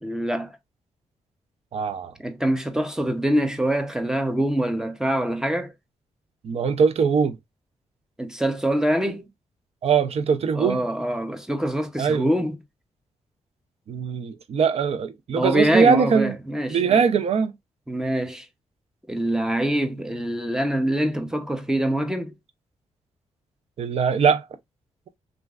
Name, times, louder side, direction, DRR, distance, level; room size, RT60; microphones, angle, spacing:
voice 1, 0.0-0.5 2.2-5.7 8.2-9.3 10.5-12.6 15.4-17.0 17.9-18.5 19.1-22.3, right 1 dB, 5° right, 0.6 m, -24 dB
voice 2, 1.7-2.1 6.4-7.4 9.8-10.8 12.0-12.3 13.9-16.4 16.7-17.5 23.8-24.4, right 6 dB, 60° right, 0.5 m, -21 dB
3.0 x 2.4 x 2.3 m
cardioid pair, 90°, 12 cm